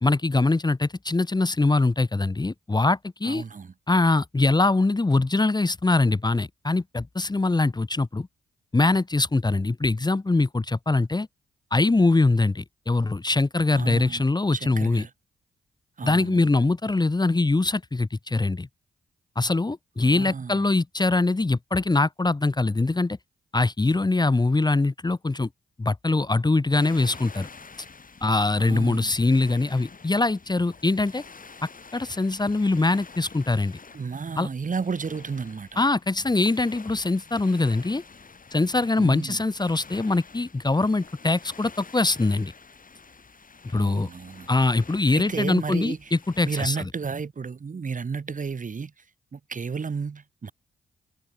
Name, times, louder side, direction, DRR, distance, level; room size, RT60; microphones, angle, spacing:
voice 1, 0.0-3.4 3.9-8.3 8.7-11.3 11.7-15.0 16.0-18.7 19.4-23.2 23.5-25.5 25.8-27.5 28.2-31.2 31.9-33.8 34.4-34.5 35.8-38.0 38.5-42.5 43.6-44.1 44.5-46.9, left 2 dB, 20° left, 1.1 m, -23 dB
voice 2, 3.2-3.7 13.7-14.2 14.5-15.1 16.0-16.5 20.0-20.7 28.6-29.1 33.9-35.8 39.0-39.4 43.7-44.5 45.1-46.1 46.4-48.9 49.3-50.5, right 5 dB, 40° right, 1.2 m, -32 dB
sound 1, 26.7-46.6, left 4 dB, 45° left, 4.7 m, -48 dB
supercardioid pair, 45°, 20 cm